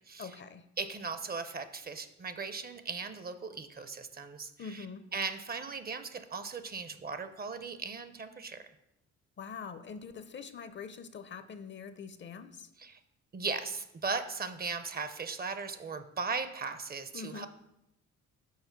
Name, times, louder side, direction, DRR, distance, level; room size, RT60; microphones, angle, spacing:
voice 1, 0.2-0.7 4.6-5.0 9.4-12.7 17.1-17.5, left 6 dB, 40° left, 11 dB, 0.5 m, -44 dB
voice 2, 0.8-4.8 5.1-8.6 12.8-13.0 13.3-17.5, right 4 dB, 30° right, 11 dB, 0.6 m, -38 dB
5.7 x 4.3 x 5.8 m, 0.85 s
cardioid pair, 90°, 30 cm